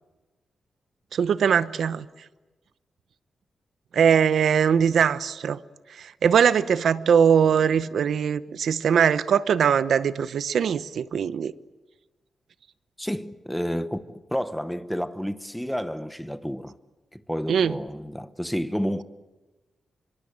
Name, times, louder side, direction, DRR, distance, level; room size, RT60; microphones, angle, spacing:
voice 1, 1.1-2.1 3.9-5.6 6.0-11.5 17.5-17.8, right 7 dB, 70° right, 0.9 m, -21 dB
voice 2, 13.0-16.8 17.1-19.0, equal, ahead, 0.9 m, -30 dB
26.0 x 23.5 x 8.8 m
wide cardioid pair, 170°, 0 cm